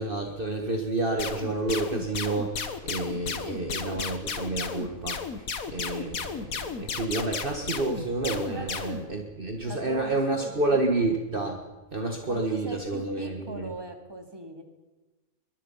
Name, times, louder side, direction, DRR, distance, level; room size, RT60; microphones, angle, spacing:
voice 1, 0.0-11.6 11.9-13.7, right 2 dB, 40° right, 2 dB, 1.9 m, -29 dB
sound 1, 1.2-9.0, left 5 dB, 90° left, 1.9 m, -34 dB
voice 2, 9.6-11.0 12.3-14.6, right 1 dB, 15° right, 4 dB, 2.6 m, -40 dB
22.5 x 22.0 x 5.7 m, 1.1 s
omnidirectional pair, 1.4 m